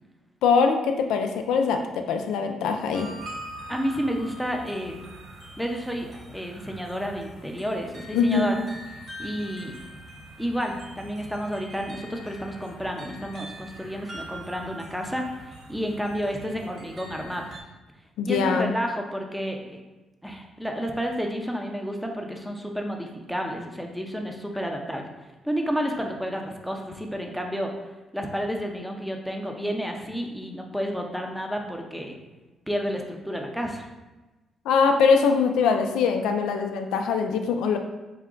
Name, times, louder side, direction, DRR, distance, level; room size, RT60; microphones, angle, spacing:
voice 1, 0.4-3.1 8.1-8.6 18.2-18.7 34.7-37.8, left 5 dB, 90° left, 5 dB, 0.4 m, -22 dB
sound 1, 2.9-17.6, right 1 dB, 45° right, 1.1 m, -43 dB
voice 2, 3.7-5.1 5.6-8.6 9.2-9.8 10.4-17.5 18.3-19.8 20.2-25.1 25.4-27.7 28.1-32.2 32.7-33.9, equal, ahead, 2 dB, 0.6 m, -31 dB
4.8 x 2.2 x 3.7 m, 1.1 s
cardioid pair, 90°, 0 cm